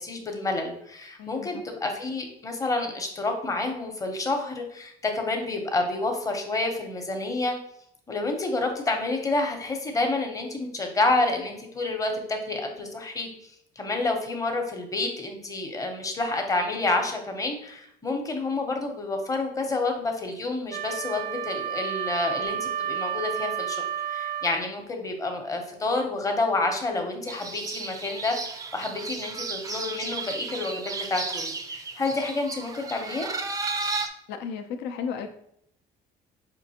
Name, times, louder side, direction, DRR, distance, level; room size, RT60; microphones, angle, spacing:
voice 1, 0.0-7.5 8.1-13.3 13.8-23.8 24.1-28.4 28.7-33.3, left 2 dB, 20° left, 3 dB, 0.7 m, -29 dB
voice 2, 1.2-1.5 34.3-35.3, left 6 dB, 85° left, 7 dB, 0.5 m, -33 dB
Wind instrument woodwind instrument, 20.7-24.7, right 9 dB, 75° right, 0.5 m, -31 dB
sound 1, 27.3-34.1, right 3 dB, 20° right, 0.4 m, -34 dB
5.1 x 2.5 x 2.8 m, 0.71 s
cardioid pair, 110°, 17 cm